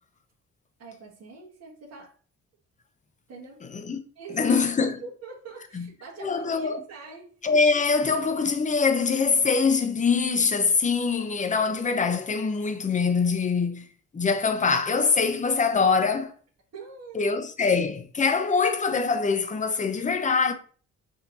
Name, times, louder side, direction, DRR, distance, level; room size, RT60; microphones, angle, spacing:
voice 1, 0.8-2.1 3.3-3.6 4.1-7.4 16.7-17.3, right 4 dB, 60° right, 1.5 m, -43 dB
voice 2, 4.3-4.9 5.7-5.9 6.2-6.8 7.4-13.9 14.1-16.3 17.1-20.5, left 5 dB, 25° left, 0.7 m, -23 dB
6.0 x 2.9 x 2.7 m
cardioid pair, 90°, 30 cm